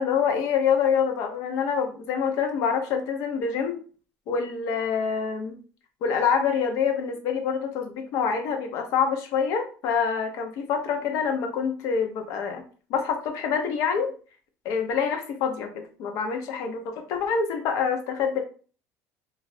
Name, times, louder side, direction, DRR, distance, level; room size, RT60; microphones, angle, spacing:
voice 1, 0.0-3.8 4.3-5.5 6.0-12.6 12.9-14.1 14.6-18.4, left 6 dB, 60° left, 5 dB, 0.6 m, -26 dB
3.1 x 2.4 x 2.5 m, 0.39 s
cardioid pair, 160°, 6 cm